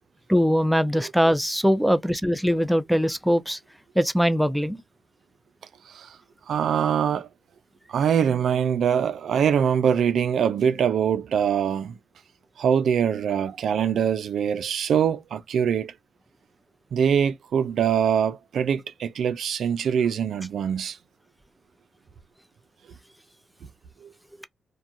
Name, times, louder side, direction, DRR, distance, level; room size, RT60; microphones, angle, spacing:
voice 1, 0.3-3.6 4.0-4.8, equal, ahead, 0.4 m, -21 dB
voice 2, 6.5-7.3 7.9-12.0 12.6-15.9 16.9-21.0 24.0-24.1, right 8 dB, 75° right, 0.3 m, -23 dB
2.4 x 2.2 x 2.6 m
cardioid pair, 60°, 0 cm